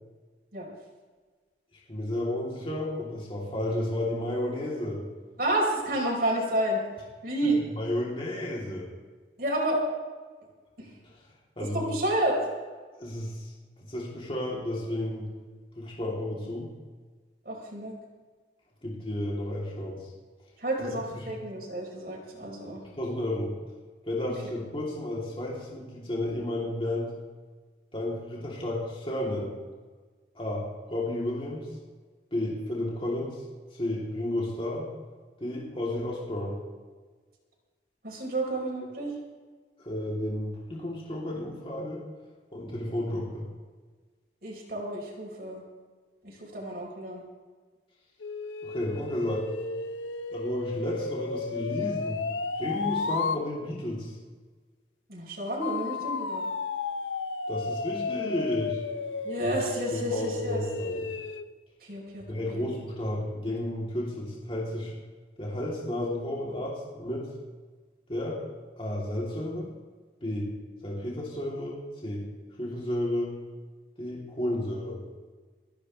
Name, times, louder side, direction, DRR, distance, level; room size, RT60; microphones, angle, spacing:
voice 1, 1.9-5.0 7.4-8.9 11.6-11.9 13.0-13.5 13.8-15.3 15.7-16.7 18.8-20.0 20.8-21.2 23.0-23.5 24.1-27.1 27.9-29.5 30.3-30.6 30.9-31.7 32.3-33.4 33.8-34.9 35.4-36.6 39.8-42.0 42.5-43.5 48.6-49.4 50.3-52.2 52.6-54.1 57.5-58.8 59.9-61.1 62.3-64.9 65.4-67.3 68.1-68.4 68.8-69.7 70.2-70.5 70.8-72.3 72.6-73.3 74.0-75.0, left 1 dB, 30° left, -4 dB, 3.3 m, -32 dB
voice 2, 5.4-6.8 7.2-7.6 9.4-9.8 10.8-10.9 11.7-12.4 17.4-18.0 20.6-22.8 38.0-39.1 44.4-45.6 46.2-47.2 55.1-56.4 59.2-60.6 61.8-62.7, right 1 dB, 55° right, -3 dB, 4.4 m, -30 dB
sound 1, 48.2-53.4 55.6-61.5, left 4 dB, 85° left, 0.8 m, -33 dB
28.5 x 10.5 x 3.4 m, 1.4 s
head